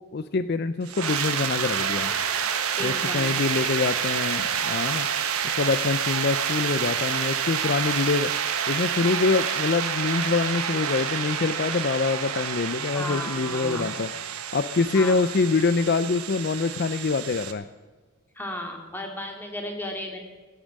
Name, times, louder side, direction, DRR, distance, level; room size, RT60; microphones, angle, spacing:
voice 1, 0.1-2.1 2.8-5.1 5.4-8.3 8.7-14.1 14.5-17.7, left 4 dB, 45° left, 12 dB, 0.4 m, -25 dB
sound 1, 0.8-17.5, right 7 dB, 85° right, 1.3 m, -28 dB
voice 2, 2.8-3.3 12.9-13.8 14.9-15.1 18.4-20.2, left 1 dB, 10° left, 2 dB, 2.2 m, -34 dB
16.5 x 8.7 x 7.4 m, 1.4 s
head